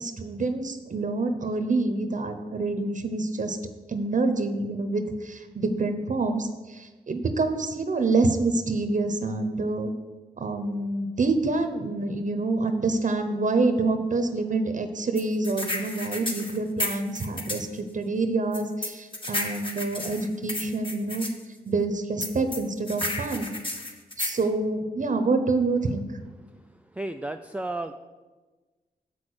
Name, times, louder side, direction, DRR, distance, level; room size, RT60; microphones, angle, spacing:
voice 1, 0.0-3.6 3.9-9.9 10.4-21.3 21.7-23.5 24.2-26.2, right 3 dB, 50° right, 7 dB, 0.9 m, -27 dB
sound 1, 15.2-17.7 18.5-21.3 22.2-24.4, left 1 dB, 30° left, 1.6 m, -32 dB
voice 2, 26.9-27.9, right 2 dB, 10° right, 6 dB, 0.4 m, -33 dB
7.3 x 6.3 x 7.9 m, 1.3 s
cardioid pair, 65°, 16 cm